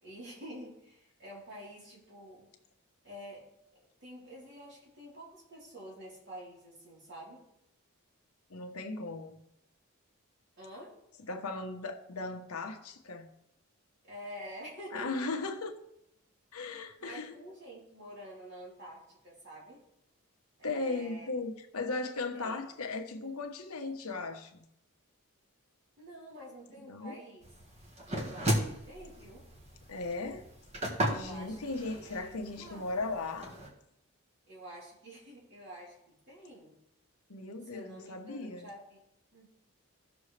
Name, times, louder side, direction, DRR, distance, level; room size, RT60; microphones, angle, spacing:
voice 1, 0.0-2.5 3.0-3.4 4.0-7.4 10.6-10.9 14.0-15.2 17.0-19.8 20.6-21.3 22.3-22.6 26.0-27.5 28.2-29.4 31.1-31.6 31.8-33.1 34.5-36.7 37.7-39.0 39.3-39.5, equal, 55° right, 3.6 m, -48 dB
voice 2, 8.5-9.4 11.3-13.3 14.9-15.8 16.5-17.4 20.6-24.6 26.8-27.1 29.9-30.5 31.1-33.6 37.3-38.7, left 3 dB, 85° left, 1.1 m, -37 dB
sound 1, 27.4-33.7, right 1 dB, 30° right, 1.6 m, -36 dB
15.0 x 6.2 x 3.3 m
head